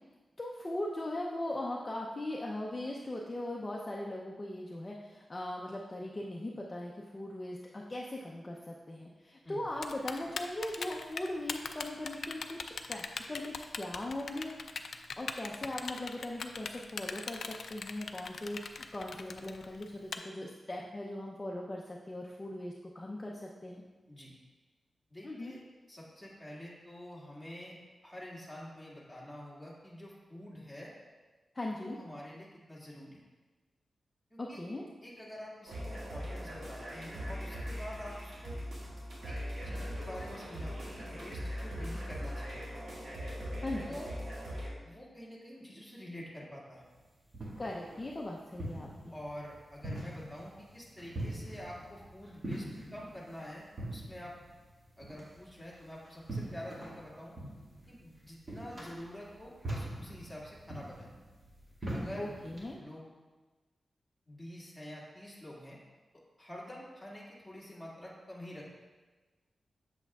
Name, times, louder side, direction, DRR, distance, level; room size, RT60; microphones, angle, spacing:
voice 1, 0.4-12.6 12.9-14.5 15.2-17.4 17.7-23.8 25.2-25.5 31.5-32.0 34.4-34.9 43.6-44.0 47.6-49.1 62.2-62.8, left 1 dB, 25° left, -2 dB, 0.6 m, -39 dB
Typing, 9.8-20.2, left 5 dB, 75° left, 0.4 m, -39 dB
voice 2, 25.1-25.6 25.9-27.7 28.0-30.9 31.8-33.2 34.3-34.6 35.0-38.6 39.2-39.3 39.6-42.6 43.9-44.1 44.8-46.8 49.1-52.7 52.9-54.3 55.0-57.3 57.9-61.1 61.9-62.3 62.8-63.1 64.3-65.8 66.4-68.7, equal, ahead, -6 dB, 1.9 m, -47 dB
sound 1, 35.7-44.7, equal, 65° right, 1.7 m, -40 dB
sound 2, 46.8-62.7, right 1 dB, 35° right, 1.9 m, -43 dB
8.0 x 7.1 x 2.4 m, 1.3 s
wide cardioid pair, 110°, 0 cm